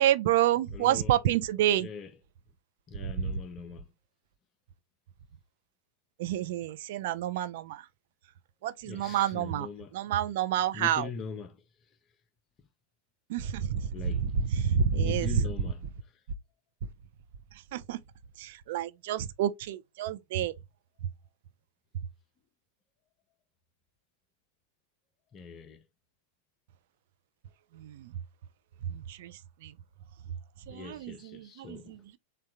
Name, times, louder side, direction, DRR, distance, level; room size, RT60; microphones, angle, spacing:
voice 1, 0.0-1.9 3.0-3.3 6.2-7.8 8.6-9.7 9.9-11.1 13.3-15.5 17.7-18.0 18.4-20.5 27.7-28.2 28.8-29.7 30.7-32.2, right 10 dB, 55° right, 0.4 m, -29 dB
voice 2, 0.7-1.2 1.8-2.2 2.9-3.9 8.8-10.0 10.7-11.6 13.9-16.2 25.3-25.9 30.7-32.0, left 5 dB, 30° left, 0.5 m, -42 dB
3.6 x 2.2 x 4.2 m
figure-of-eight pair, 90°, 0 cm